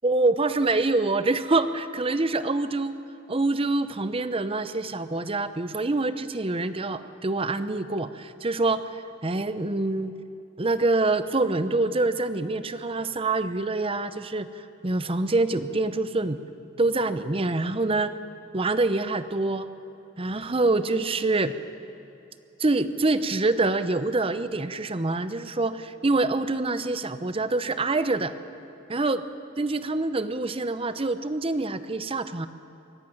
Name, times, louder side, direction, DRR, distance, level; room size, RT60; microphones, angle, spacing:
voice 1, 0.0-3.0 3.3-10.1 10.6-16.4 16.8-18.1 18.5-19.7 20.2-21.5 22.6-28.3 28.9-29.2 29.6-32.5, right 2 dB, 25° right, 12 dB, 0.7 m, -25 dB
23.0 x 12.0 x 9.2 m, 2.8 s
head